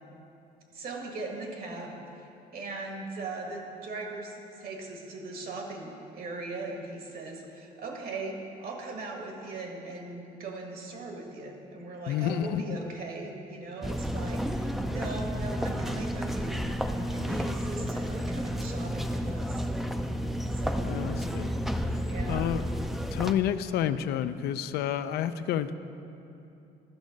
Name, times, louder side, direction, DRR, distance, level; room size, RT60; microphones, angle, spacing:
voice 1, 0.7-16.6 17.1-19.7 20.5-20.9 22.0-22.5, right 3 dB, 60° right, 2 dB, 1.7 m, -39 dB
voice 2, 12.1-12.8 20.9-21.6 22.3-22.7 23.1-25.7, left 10 dB, 70° left, 12 dB, 0.4 m, -29 dB
sound 1, 13.8-23.3, equal, ahead, 0.4 m, -31 dB
11.5 x 6.2 x 5.2 m, 2.8 s
cardioid pair, 110°, 17 cm